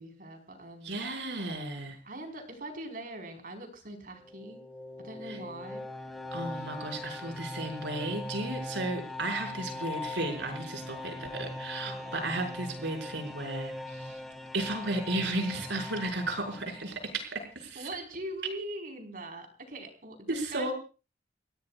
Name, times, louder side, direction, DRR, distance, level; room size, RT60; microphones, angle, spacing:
voice 1, 0.0-1.0 2.0-4.6 5.0-5.9 11.8-12.2 17.7-20.7, right 1 dB, 50° right, 4 dB, 4.6 m, -42 dB
voice 2, 0.8-2.0 5.3-5.4 6.3-14.2 14.5-17.9 20.3-20.7, right 2 dB, 90° right, 3 dB, 5.8 m, -34 dB
sound 1, 4.1-17.2, left 2 dB, ahead, 2.2 m, -41 dB
30.0 x 17.0 x 2.4 m, 0.34 s
head